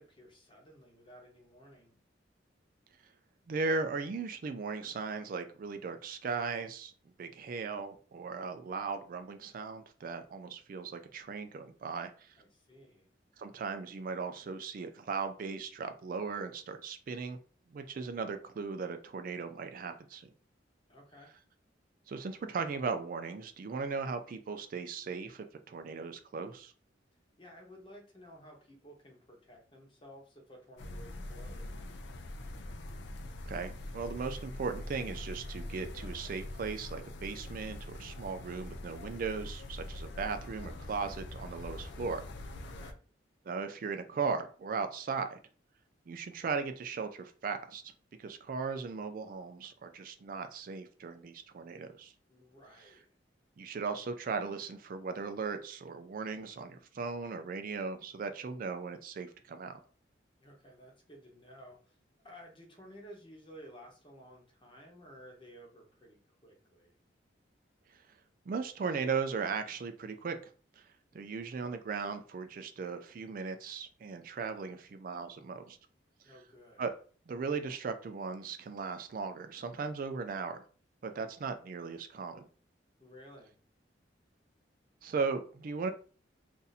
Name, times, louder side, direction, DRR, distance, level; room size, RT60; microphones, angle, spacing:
voice 1, 0.0-2.0 12.4-13.1 20.9-21.3 27.4-31.8 42.6-43.0 52.3-53.1 60.4-62.0 62.2-67.0 76.2-76.8 83.0-83.5, equal, 25° left, 1 dB, 0.9 m, -54 dB
voice 2, 3.5-6.9 7.2-12.4 13.4-17.4 17.7-20.3 22.1-26.7 33.5-42.2 43.5-45.4 46.1-47.8 48.2-52.1 53.6-59.8 67.9-68.0 68.5-70.4 70.8-70.9 71.1-75.8 76.8-76.9 77.3-80.6 81.0-82.5 85.0-85.9, right 5 dB, 50° right, 8 dB, 0.3 m, -37 dB
sound 1, 30.8-42.9, left 1 dB, 70° left, 0.5 m, -43 dB
2.6 x 2.6 x 4.0 m, 0.40 s
head